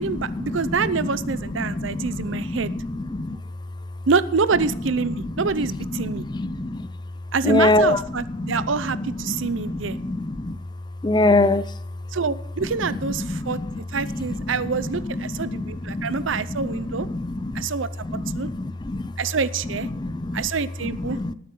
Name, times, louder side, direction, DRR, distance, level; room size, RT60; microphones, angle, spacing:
voice 1, 0.0-2.7 4.1-6.2 7.3-10.0 12.1-13.6 13.9-17.1 17.5-18.1 18.4-18.5 19.2-19.9 20.3-21.2, right 4 dB, 75° right, 16 dB, 0.6 m, -26 dB
voice 2, 1.6-3.4 6.0-6.9 7.4-8.0 8.4-8.6 9.3-9.4 10.0-10.6 11.0-11.6 13.3-13.6 14.1-14.2 15.5-15.6 15.9-16.1 16.6-16.7 17.1-17.7 18.1-19.0 19.9-20.4 21.2-21.3, left 2 dB, 20° left, 15 dB, 0.5 m, -24 dB
19.0 x 9.4 x 3.8 m, 0.69 s
head